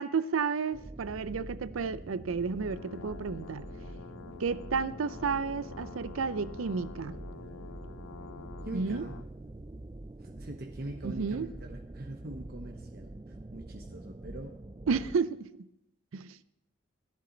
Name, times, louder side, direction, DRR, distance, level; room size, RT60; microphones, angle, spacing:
voice 1, 0.0-3.7 4.4-7.2 8.7-9.1 11.0-11.5 14.9-15.6 16.1-16.4, right 5 dB, 85° right, 0.5 m, -32 dB
sound 1, 0.7-15.2, right 2 dB, 20° right, 0.4 m, -45 dB
sound 2, 2.6-9.3, left 7 dB, 75° left, 0.4 m, -48 dB
voice 2, 8.6-9.1 10.2-14.6 14.9-15.0, right 1 dB, 50° right, 0.9 m, -43 dB
15.5 x 11.0 x 3.9 m
head